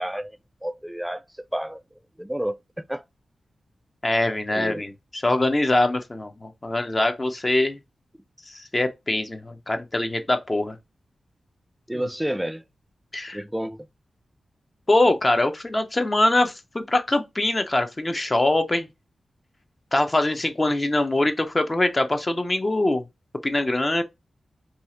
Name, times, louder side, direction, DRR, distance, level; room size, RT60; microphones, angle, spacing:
voice 1, 0.0-1.8 2.2-3.0 4.5-4.9 11.9-12.6 13.3-13.9, right 1 dB, 5° right, 0.3 m, -30 dB
voice 2, 4.0-7.8 8.5-10.8 13.1-13.4 14.9-18.9 19.9-23.0 23.4-24.0, left 2 dB, 30° left, 0.6 m, -23 dB
2.6 x 2.4 x 4.2 m
cardioid pair, 70°, 0 cm